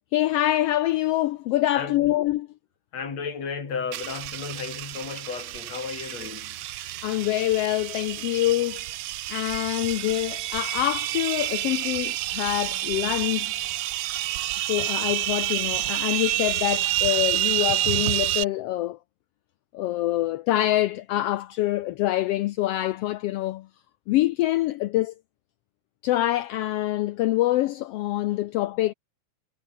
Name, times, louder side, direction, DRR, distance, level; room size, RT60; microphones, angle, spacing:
voice 1, 0.1-2.5 6.7-8.8 9.3-13.7 14.6-19.0 19.7-23.7 24.1-25.1 26.0-28.9, left 15 dB, 90° left, 1.3 m, -25 dB
voice 2, 1.7-2.0 2.9-6.5, left 5 dB, 60° left, 5.5 m, -34 dB
sound 1, 3.9-18.4, right 15 dB, 75° right, 1.4 m, -29 dB
omnidirectional pair, 3.3 m